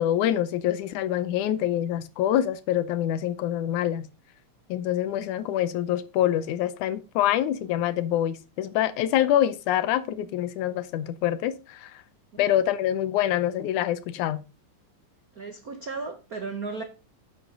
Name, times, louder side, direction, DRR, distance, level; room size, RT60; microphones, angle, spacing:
voice 1, 0.0-4.1 4.7-12.0 12.4-14.4, left 11 dB, 80° left, 2.3 m, -25 dB
voice 2, 15.3-16.8, right 4 dB, 80° right, 0.8 m, -35 dB
10.0 x 7.8 x 3.9 m
omnidirectional pair, 3.5 m